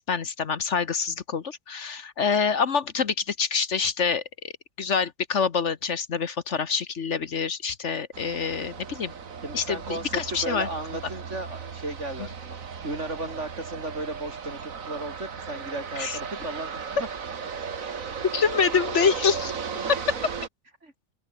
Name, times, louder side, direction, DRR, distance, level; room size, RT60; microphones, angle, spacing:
voice 1, 0.0-4.5 4.8-9.1 9.5-10.7 16.0-16.2 18.3-19.5 19.8-20.0, left 6 dB, 60° left, 1.5 m, -26 dB
sound 1, 8.1-20.5, right 6 dB, 80° right, 2.1 m, -36 dB
voice 2, 9.4-12.6 12.8-16.8 17.8-18.0 20.8-20.9, right 2 dB, 60° right, 6.1 m, -35 dB
open air
omnidirectional pair, 1.4 m